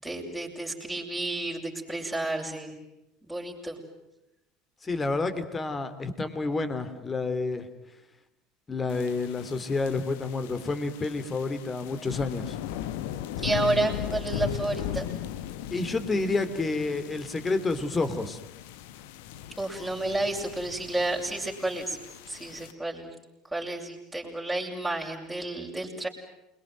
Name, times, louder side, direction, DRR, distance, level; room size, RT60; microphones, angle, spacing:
voice 1, 0.0-2.7 3.3-3.8 13.4-15.1 19.6-22.0 22.3-23.1 23.5-26.1, right 2 dB, ahead, -4 dB, 6.7 m, -31 dB
voice 2, 4.8-7.7 8.7-12.6 15.7-18.4, left 3 dB, 20° left, 11 dB, 3.0 m, -29 dB
sound 1, 8.9-22.7, left 10 dB, 65° left, 1.3 m, -38 dB
28.0 x 22.0 x 9.3 m, 0.91 s
figure-of-eight pair, 70°, 0 cm